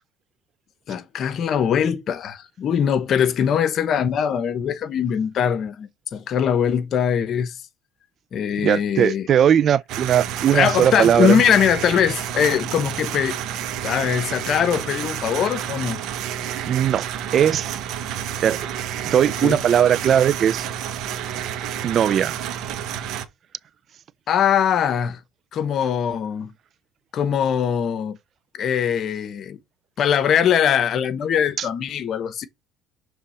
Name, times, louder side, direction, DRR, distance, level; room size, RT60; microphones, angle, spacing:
voice 1, 0.9-7.5 8.3-9.3 10.5-13.4 13.8-16.0 19.4-19.6 24.3-25.2 25.5-26.5 27.1-28.2 28.6-29.6 30.0-32.5, left 8 dB, 50° left, 1.0 m, -21 dB
voice 2, 8.6-11.4 16.6-17.1 17.3-17.8 18.4-18.6 19.1-20.7 21.8-22.3 31.6-31.7, right 9 dB, 50° right, 0.4 m, -18 dB
sound 1, 9.9-23.2, right 9 dB, 65° right, 1.0 m, -30 dB
6.6 x 3.5 x 4.3 m
supercardioid pair, 95°, 0 cm